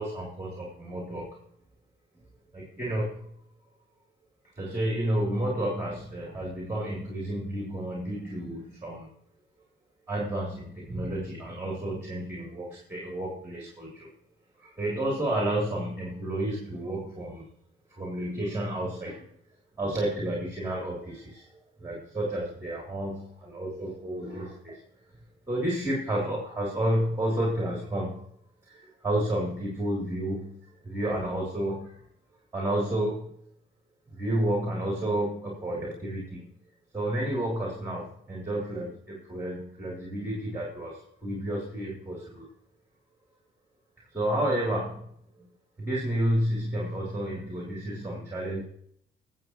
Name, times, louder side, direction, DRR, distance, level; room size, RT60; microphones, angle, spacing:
voice 1, 0.0-1.4 2.5-3.3 4.6-9.1 10.1-14.1 14.6-17.5 17.9-19.3 19.8-21.4 21.8-24.8 25.5-28.3 28.7-30.6 30.8-32.0 32.5-33.2 34.1-36.5 36.9-42.5 44.1-45.0 45.8-48.6, right 1 dB, 15° right, -3 dB, 3.3 m, -31 dB
22.5 x 7.7 x 3.1 m, 0.69 s
cardioid pair, 90°, 20 cm